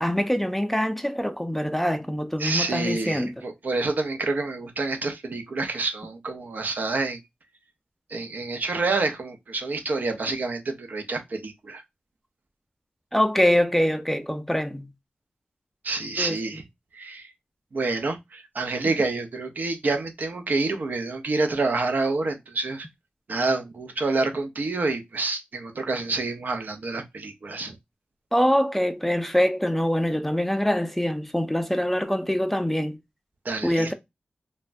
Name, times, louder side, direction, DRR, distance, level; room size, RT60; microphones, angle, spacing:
voice 1, 0.0-3.3 13.1-14.9 16.2-16.4 28.3-33.0 33.6-33.9, equal, 5° left, 0.3 m, -24 dB
voice 2, 2.4-7.2 8.1-11.8 15.8-16.6 16.9-17.3 17.7-22.9 23.3-27.7 33.4-33.9, right 3 dB, 65° right, 0.6 m, -28 dB
3.2 x 2.1 x 2.5 m
wide cardioid pair, 75°, 3 cm